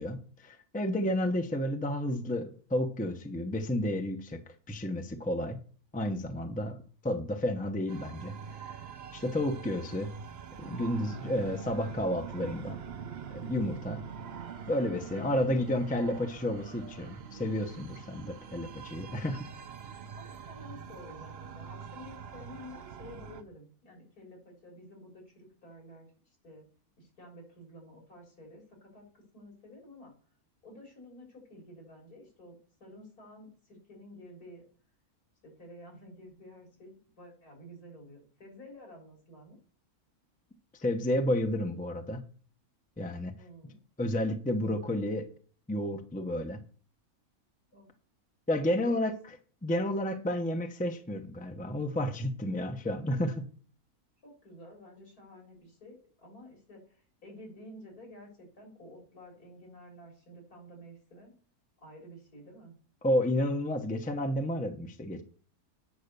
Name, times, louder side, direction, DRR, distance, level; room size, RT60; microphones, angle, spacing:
voice 1, 0.0-4.4 4.7-5.6 5.9-6.8 7.0-8.3 8.6-8.7 9.1-10.1 10.6-12.8 13.3-14.0 14.7-19.5 40.8-42.2 43.0-43.3 44.0-45.3 45.7-46.6 48.5-49.1 49.6-53.5 63.0-65.2, left 1 dB, 5° left, 6 dB, 0.7 m, -31 dB
sound 1, 7.9-23.4, right 7 dB, 50° right, 0.9 m, -44 dB
voice 2, 20.2-26.6 27.0-30.1 30.6-32.5 32.8-34.6 35.4-39.6 43.4-43.8 47.7-47.9 48.7-49.0 54.2-61.3 61.8-62.7, equal, 75° left, 0 dB, 4.3 m, -51 dB
9.3 x 5.7 x 6.7 m, 0.43 s
omnidirectional pair, 1.6 m